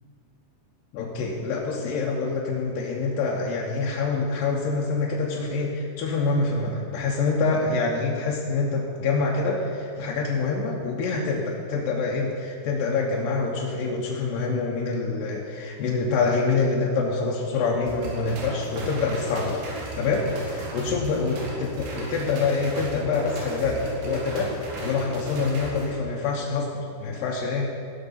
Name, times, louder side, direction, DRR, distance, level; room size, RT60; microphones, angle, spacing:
voice 1, 0.9-19.7 20.0-27.7, left 4 dB, 75° left, -3 dB, 2.1 m, -26 dB
sound 1, 17.9-25.9, right 2 dB, 80° right, 4.1 m, -35 dB
17.5 x 6.0 x 5.6 m, 2.3 s
omnidirectional pair, 5.1 m